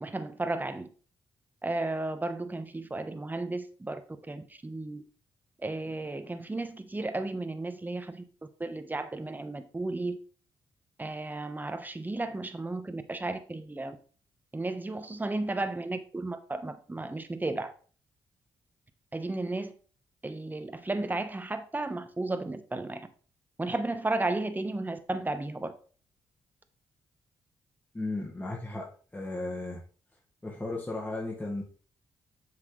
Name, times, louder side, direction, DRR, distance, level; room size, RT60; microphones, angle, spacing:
voice 1, 0.0-0.9 1.6-4.0 4.3-5.0 5.6-8.2 8.6-10.2 11.0-14.0 14.5-17.7 19.1-19.7 20.2-23.1 23.6-25.7, right 2 dB, 20° right, 1.1 m, -33 dB
voice 2, 27.9-29.8 30.4-31.6, left 2 dB, 15° left, 1.7 m, -35 dB
7.5 x 5.8 x 3.3 m
supercardioid pair, 60°, 10 cm